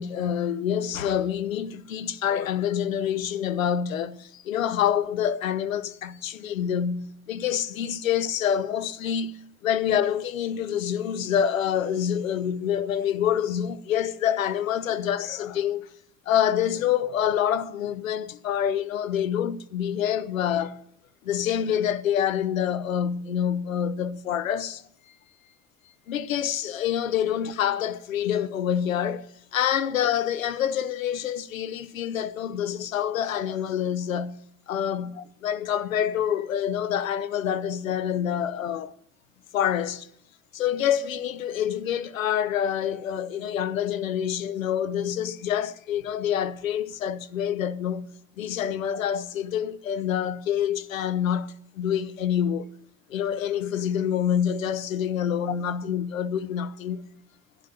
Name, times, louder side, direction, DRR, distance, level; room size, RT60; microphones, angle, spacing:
voice 1, 0.0-15.9 16.3-20.8 21.2-24.8 26.1-34.4 34.7-38.9 39.5-40.1 40.5-48.1 48.4-52.7 53.1-57.1, left 9 dB, 85° left, 0.7 m, -27 dB
10.5 x 10.5 x 6.8 m
figure-of-eight pair, 60°, 39 cm